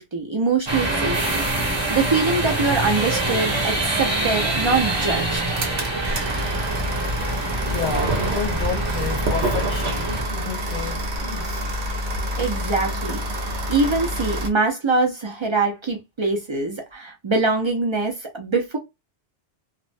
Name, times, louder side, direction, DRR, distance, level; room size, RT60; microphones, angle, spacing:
voice 1, 0.0-1.4 1.9-5.4 12.4-13.2 13.7-18.8, right 3 dB, 45° right, 0.3 m, -23 dB
sound 1, 0.7-10.2, right 2 dB, 30° right, 0.7 m, -25 dB
sound 2, 4.7-14.5, right 1 dB, 70° right, 1.0 m, -27 dB
voice 2, 7.6-11.6, left 5 dB, 55° left, 0.6 m, -31 dB
2.4 x 2.1 x 2.5 m
omnidirectional pair, 1.2 m